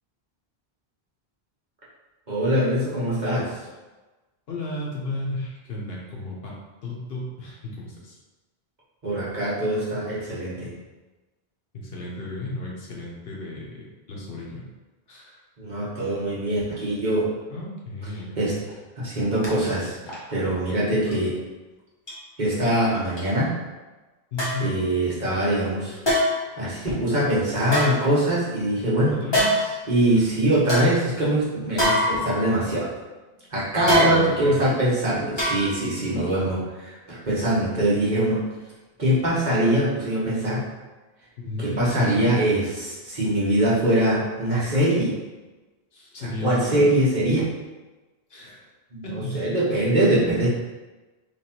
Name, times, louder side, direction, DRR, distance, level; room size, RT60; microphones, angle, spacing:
voice 1, 2.3-3.6 9.0-10.7 15.6-17.3 18.4-18.5 19.0-20.0 20.3-21.4 22.4-23.6 24.6-26.0 26.5-29.2 29.9-32.9 33.5-38.5 39.0-40.6 41.6-45.2 46.2-47.4 48.9-50.5, right 1 dB, 45° right, -7 dB, 1.4 m, -23 dB
voice 2, 4.5-6.6 6.8-8.2 11.7-14.7 15.1-15.4 17.5-18.4 24.3-24.8 29.1-29.8 30.1-30.2 33.8-34.6 41.4-42.3 45.9-46.9 48.3-48.6 49.0-49.4, left 2 dB, 70° left, -3 dB, 1.2 m, -34 dB
sound 1, 19.4-19.5 20.1-20.3 21.1-21.2 22.1-22.2 23.2-23.3 24.4-24.7 26.0-26.5 27.6-28.5 29.3-29.8 30.3-30.4 30.7-30.9 31.8-32.6 33.9-34.5 35.4-36.0 36.3-36.4, left 1 dB, 25° left, 1.1 m, -24 dB
3.6 x 3.2 x 4.4 m, 1.2 s
omnidirectional pair, 1.0 m